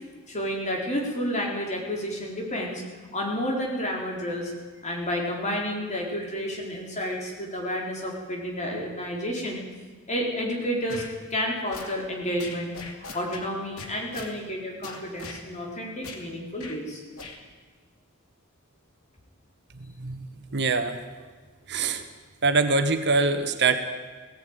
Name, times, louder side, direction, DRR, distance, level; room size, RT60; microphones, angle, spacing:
voice 1, 0.3-2.8 3.1-4.5 4.8-9.6 10.1-11.0 11.3-17.0, equal, 35° left, -1 dB, 4.4 m, -30 dB
sound 1, 10.9-11.1 11.7-12.0 12.4-13.5 13.8-14.3 14.8-15.4 16.0-16.2 16.6-16.8 17.2-17.4, left 3 dB, 80° left, 2.7 m, -40 dB
voice 2, 19.8-20.3 20.5-21.0 21.7-22.0 22.4-23.8, right 3 dB, 55° right, 8 dB, 1.4 m, -24 dB
17.5 x 17.0 x 9.1 m, 1.4 s
head